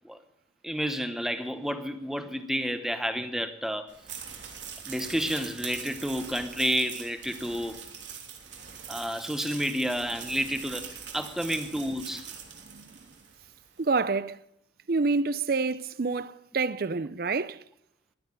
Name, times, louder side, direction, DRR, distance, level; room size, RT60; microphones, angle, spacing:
voice 1, 0.6-3.9 4.9-7.8 8.9-12.3, equal, ahead, 0.9 m, -30 dB
sound 1, 3.9-13.4, right 7 dB, 75° right, 3.1 m, -42 dB
voice 2, 12.6-13.0 13.8-14.4 14.9-17.6, right 4 dB, 50° right, 0.5 m, -28 dB
16.0 x 11.0 x 5.4 m
head